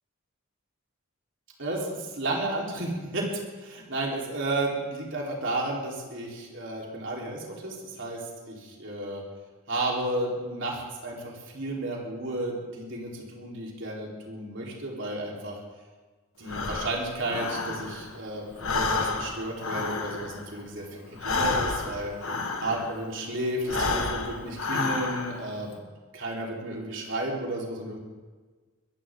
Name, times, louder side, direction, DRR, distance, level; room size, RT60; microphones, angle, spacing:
voice 1, 1.6-3.3 3.6-9.2 9.7-15.6 16.4-20.9 21.2-22.1 22.6-25.8 26.1-28.0, right 1 dB, 60° right, -2 dB, 4.0 m, -32 dB
Breathing, 16.5-18.2 18.5-23.1 23.6-25.5, left 3 dB, 75° left, 1.7 m, -30 dB
22.0 x 15.0 x 3.8 m, 1.4 s
head